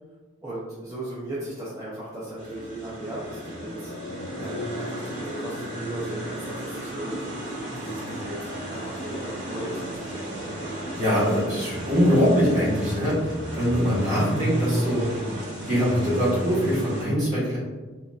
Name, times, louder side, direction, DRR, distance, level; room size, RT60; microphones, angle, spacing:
voice 1, 0.4-10.4, right 1 dB, 15° right, -9 dB, 0.4 m, -37 dB
sound 1, 2.4-17.0, right 1 dB, 60° right, 1.0 m, -33 dB
sound 2, 2.9-7.5 7.7-7.8, left 2 dB, 85° left, 0.3 m, -39 dB
sound 3, 7.1-11.1, right 1 dB, 40° left, 0.6 m, -39 dB
voice 2, 10.9-15.0 15.7-17.6, equal, 40° right, -9 dB, 1.2 m, -23 dB
2.8 x 2.6 x 2.2 m, 1.3 s
head